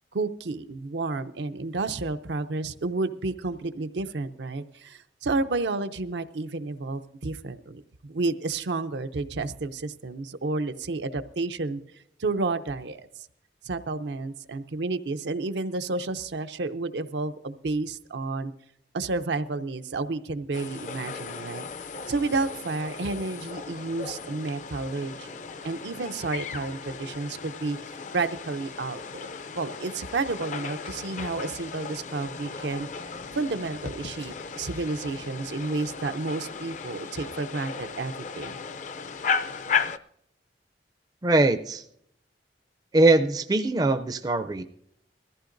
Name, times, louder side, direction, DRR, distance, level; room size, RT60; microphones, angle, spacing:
voice 1, 0.1-11.8 12.2-13.1 13.6-18.5 18.9-21.6 22.1-25.3 25.6-32.9 33.3-38.6, right 3 dB, 80° right, 9 dB, 0.6 m, -31 dB
sound 1, 20.5-40.0, left 5 dB, 45° left, 0.4 m, -35 dB
voice 2, 41.2-41.8 42.9-44.6, right 2 dB, 20° right, 8 dB, 0.4 m, -22 dB
20.5 x 14.5 x 2.6 m, 0.73 s
head